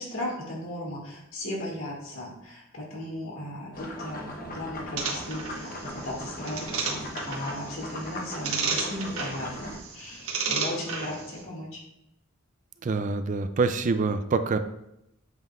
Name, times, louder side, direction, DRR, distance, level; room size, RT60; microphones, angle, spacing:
voice 1, 0.0-11.8, left 1 dB, 75° left, -3 dB, 2.2 m, -36 dB
sound 1, 3.7-9.8, left 1 dB, 45° left, 0.9 m, -38 dB
sound 2, 5.0-11.4, right 5 dB, 85° right, 1.2 m, -33 dB
voice 2, 12.8-14.6, right 4 dB, 40° right, 10 dB, 0.4 m, -25 dB
7.9 x 5.4 x 2.4 m, 0.83 s
head